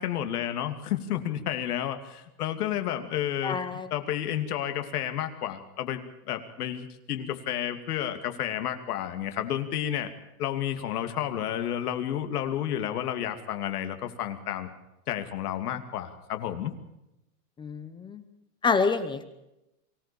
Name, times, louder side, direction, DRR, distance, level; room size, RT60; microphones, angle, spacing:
voice 1, 0.0-3.6 3.9-10.1 10.4-14.7 15.1-16.7, left 11 dB, 75° left, 7 dB, 2.8 m, -31 dB
voice 2, 3.4-3.9 17.6-18.2 18.6-19.2, left 5 dB, 10° left, 11 dB, 0.7 m, -27 dB
24.0 x 16.5 x 7.0 m, 0.88 s
supercardioid pair, 165°, 45 cm